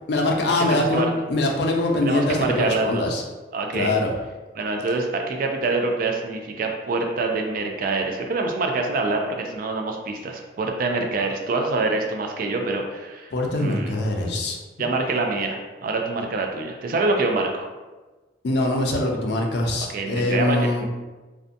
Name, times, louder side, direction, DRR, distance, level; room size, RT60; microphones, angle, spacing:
voice 1, 0.1-3.2 3.7-4.1 13.3-14.6 18.4-20.9, left 2 dB, 60° left, 1 dB, 0.4 m, -23 dB
voice 2, 0.7-1.1 2.0-3.0 3.5-3.9 4.6-13.3 13.6-13.9 14.8-17.7 19.9-20.9, right 3 dB, 50° right, 3 dB, 0.3 m, -25 dB
2.6 x 2.1 x 2.5 m, 1.2 s
head